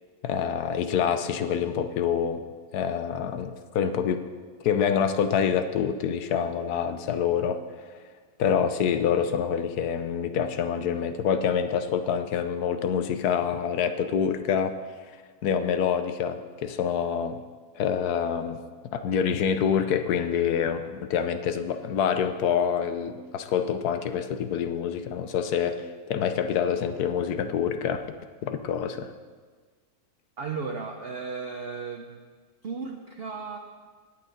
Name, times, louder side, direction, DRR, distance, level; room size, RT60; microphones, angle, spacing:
voice 1, 0.2-2.4 2.7-4.2 4.6-7.9 8.4-14.8 15.4-17.4 17.8-18.6 18.9-28.1 28.4-29.1, left 7 dB, 85° left, 9 dB, 1.3 m, -26 dB
voice 2, 30.4-32.2 32.6-33.6, right 5 dB, 50° right, 3 dB, 0.8 m, -35 dB
17.0 x 8.6 x 3.9 m, 1.5 s
omnidirectional pair, 1.6 m